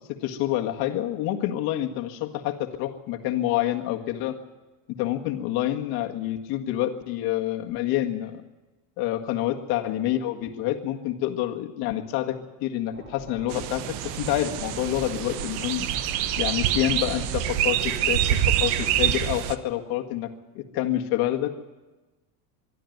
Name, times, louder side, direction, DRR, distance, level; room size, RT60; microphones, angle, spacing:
voice 1, 0.2-4.4 5.0-8.4 9.0-15.9 16.4-20.3 20.5-21.5, left 13 dB, 50° left, 4 dB, 1.9 m, -27 dB
sound 1, 12.9-18.9, right 5 dB, 30° right, 4.6 m, -41 dB
sound 2, 13.5-19.6, right 11 dB, 55° right, 1.2 m, -26 dB
23.0 x 12.5 x 9.4 m, 1.2 s
cardioid pair, 160°, 47 cm